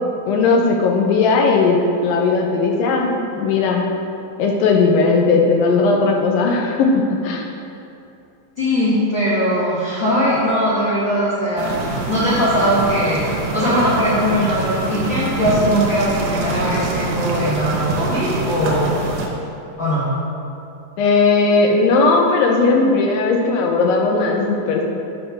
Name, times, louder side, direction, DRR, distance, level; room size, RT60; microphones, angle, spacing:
voice 1, 0.3-3.9 4.4-6.9 7.2-7.4 21.0-24.8, left 4 dB, 80° left, 1 dB, 2.4 m, -17 dB
voice 2, 8.6-11.7 12.1-18.9 19.8-20.0, equal, 45° left, -12 dB, 1.6 m, -20 dB
sound 1, 11.6-19.3, right 3 dB, 75° right, 2.4 m, -24 dB
7.9 x 4.4 x 5.8 m, 2.7 s
omnidirectional pair, 4.1 m